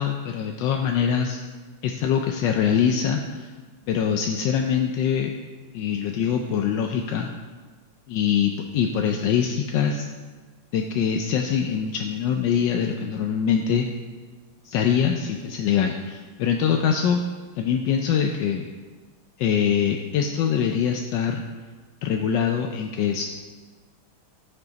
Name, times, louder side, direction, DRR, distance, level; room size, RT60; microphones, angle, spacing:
voice 1, 0.0-1.4 1.8-3.5 3.9-5.3 5.7-7.3 8.1-10.1 10.7-13.9 14.6-17.3 17.6-18.7 19.4-21.4 22.0-23.3, left 7 dB, 70° left, 3 dB, 1.1 m, -23 dB
14.5 x 5.6 x 3.9 m, 1.4 s
omnidirectional pair, 2.4 m